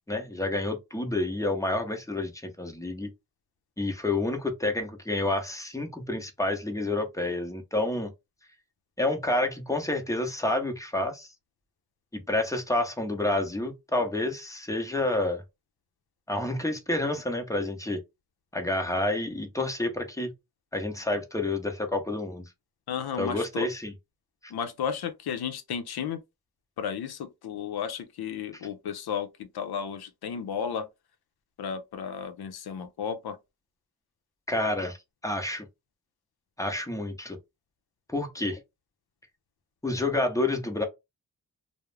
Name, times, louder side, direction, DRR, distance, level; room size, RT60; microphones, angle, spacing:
voice 1, 0.1-3.1 3.8-8.1 9.0-11.3 12.1-15.4 16.3-18.0 18.5-20.3 20.7-22.5 23.2-23.9 24.4-24.5 34.5-35.0 35.2-35.6 36.6-37.4 38.1-38.6 39.8-40.8, left 2 dB, 10° left, 0.7 m, -29 dB
voice 2, 22.9-23.7 24.5-26.2 26.8-30.9 31.6-33.4, left 7 dB, 75° left, 0.6 m, -33 dB
2.3 x 2.1 x 3.1 m
cardioid pair, 70°, 38 cm